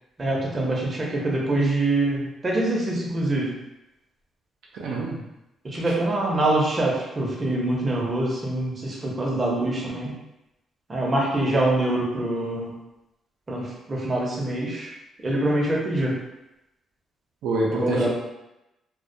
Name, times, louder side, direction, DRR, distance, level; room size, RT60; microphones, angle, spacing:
voice 1, 0.2-3.6 5.6-10.1 10.9-12.7 13.5-14.9 15.2-16.2 17.7-18.1, right 1 dB, 30° right, -3 dB, 0.6 m, -24 dB
voice 2, 4.7-5.2 17.4-18.1, right 2 dB, 80° right, -3 dB, 0.4 m, -26 dB
2.2 x 2.1 x 2.6 m, 0.92 s
cardioid pair, 90°, 0 cm